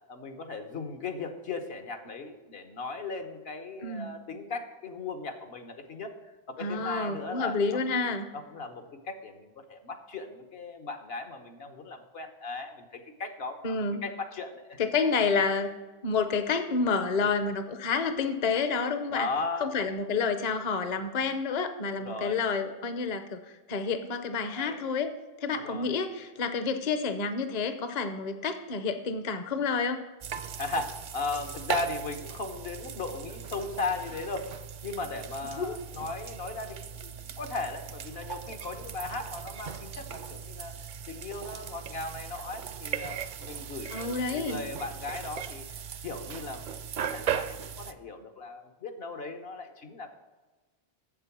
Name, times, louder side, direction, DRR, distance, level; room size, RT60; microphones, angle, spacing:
voice 1, 0.1-6.1 6.5-7.8 8.3-14.8 19.1-19.7 21.9-22.4 24.5-24.8 25.6-25.9 30.6-34.5 34.8-37.1 37.4-40.8 41.1-45.6 46.0-50.1, left 3 dB, 70° left, 6 dB, 1.3 m, -37 dB
voice 2, 3.8-4.1 6.6-8.3 13.6-14.0 14.8-15.7 16.0-19.3 19.6-23.4 23.7-30.0 35.6-35.7 43.9-44.6, left 4 dB, 45° left, 9 dB, 0.7 m, -29 dB
sound 1, 30.2-47.9, right 7 dB, 60° right, 0.6 m, -38 dB
7.6 x 7.6 x 5.9 m, 1.2 s
omnidirectional pair, 1.0 m